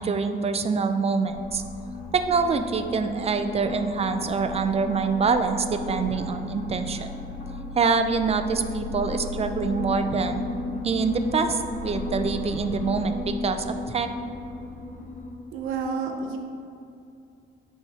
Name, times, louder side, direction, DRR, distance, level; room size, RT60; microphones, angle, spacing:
voice 1, 0.0-1.6 2.1-7.1 7.8-10.4 10.8-14.1, right 5 dB, 30° right, 8 dB, 0.5 m, -25 dB
sound 1, 1.3-15.3, left 2 dB, 40° left, 1.3 m, -34 dB
voice 2, 15.5-16.4, right 5 dB, 85° right, 3 dB, 0.7 m, -29 dB
10.0 x 3.5 x 2.8 m, 2.6 s
cardioid pair, 90°, 20 cm